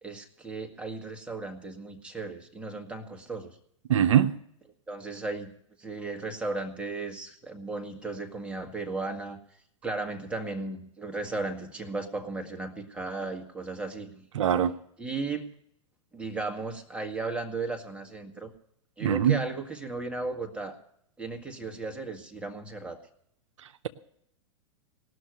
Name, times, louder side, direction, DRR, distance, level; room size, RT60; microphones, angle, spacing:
voice 1, 0.0-3.6 4.9-9.4 9.8-14.3 15.0-15.5 16.1-18.5 19.0-20.8 21.2-23.0, right 3 dB, 5° right, 1.8 m, -35 dB
voice 2, 3.9-4.3 14.3-14.8 19.0-19.4, right 9 dB, 70° right, 0.7 m, -22 dB
18.5 x 6.4 x 9.4 m
hypercardioid pair, 100°, 17 cm